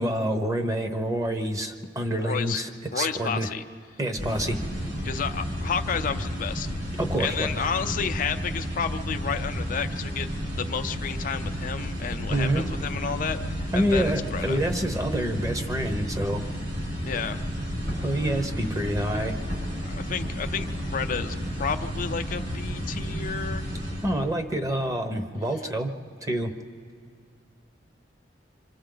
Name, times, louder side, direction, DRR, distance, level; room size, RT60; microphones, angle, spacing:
voice 1, 0.0-2.7 2.9-3.5 4.0-4.6 7.0-7.5 12.3-12.6 13.7-16.4 18.0-19.4 24.0-25.9 26.2-26.5, right 1 dB, 20° right, 6 dB, 0.9 m, -27 dB
voice 2, 2.1-2.6 2.9-3.6 5.0-6.7 7.2-10.3 10.6-14.6 17.0-17.4 19.9-23.7, left 6 dB, 45° left, 7 dB, 0.5 m, -31 dB
sound 1, 4.2-24.1, equal, 70° right, 7.0 m, -32 dB
26.5 x 25.0 x 3.9 m, 2.2 s
head